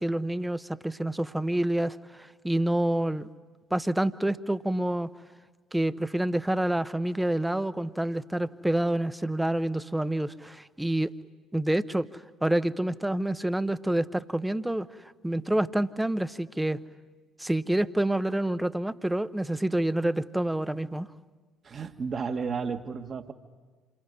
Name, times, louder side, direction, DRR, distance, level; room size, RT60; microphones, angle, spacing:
voice 1, 0.0-3.3 3.7-5.1 5.7-11.1 11.5-16.8 17.4-21.1, right 1 dB, 5° right, 14 dB, 1.0 m, -28 dB
voice 2, 21.6-23.3, right 5 dB, 40° right, 8 dB, 1.8 m, -32 dB
28.0 x 21.5 x 9.9 m, 1.3 s
figure-of-eight pair, 50°, 0 cm